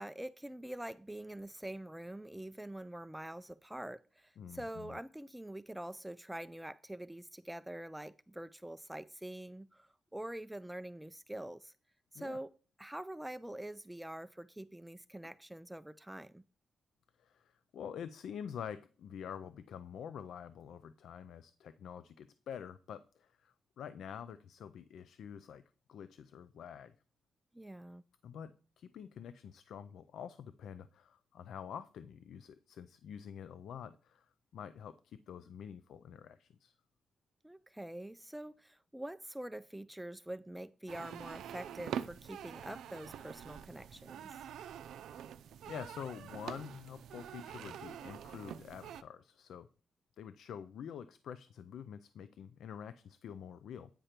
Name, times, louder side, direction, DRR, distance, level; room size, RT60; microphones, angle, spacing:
voice 1, 0.0-11.7 12.1-12.5 12.8-16.4 27.5-28.0 37.4-44.4, right 1 dB, 5° right, 0.3 m, -45 dB
voice 2, 4.4-5.0 12.1-12.4 17.2-25.6 25.9-26.9 28.2-36.7 44.8-45.3 45.7-49.7 50.2-53.9, left 8 dB, 80° left, 0.4 m, -47 dB
sound 1, 40.9-49.0, right 9 dB, 90° right, 0.4 m, -45 dB
9.0 x 5.0 x 4.4 m
cardioid pair, 110°, 0 cm